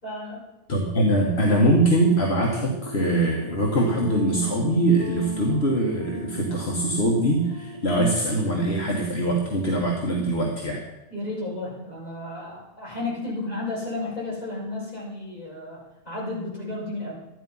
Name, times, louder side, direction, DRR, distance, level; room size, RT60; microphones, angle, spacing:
voice 1, 0.0-0.5 11.1-17.2, left 2 dB, 35° left, -7 dB, 5.7 m, -33 dB
voice 2, 0.7-10.8, right 1 dB, 65° left, -1 dB, 1.8 m, -22 dB
sound 1, 1.7-8.9, right 2 dB, 35° right, 1.1 m, -37 dB
13.0 x 11.0 x 5.5 m, 0.92 s
omnidirectional pair, 1.2 m